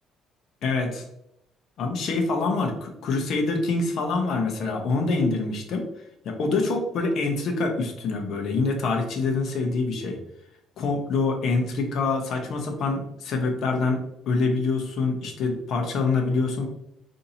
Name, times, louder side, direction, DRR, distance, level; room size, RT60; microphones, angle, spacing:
voice 1, 0.6-1.0 1.8-5.9 6.2-10.2 10.8-14.0 14.3-16.7, left 3 dB, 55° left, 2 dB, 0.8 m, -25 dB
4.1 x 2.7 x 2.7 m, 0.82 s
cardioid pair, 150°, 0 cm